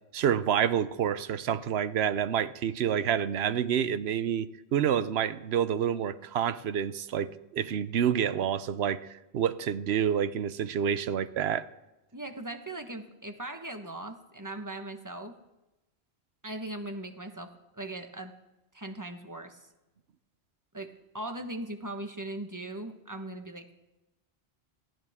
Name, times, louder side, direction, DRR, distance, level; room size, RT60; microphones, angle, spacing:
voice 1, 0.1-9.1 9.3-11.7, right 8 dB, 75° right, 14 dB, 0.9 m, -28 dB
voice 2, 12.1-15.4 16.4-17.5 17.7-18.3 18.7-19.7 20.7-23.6, right 1 dB, 20° right, 6 dB, 1.1 m, -39 dB
20.5 x 15.5 x 3.6 m, 0.99 s
omnidirectional pair, 1.1 m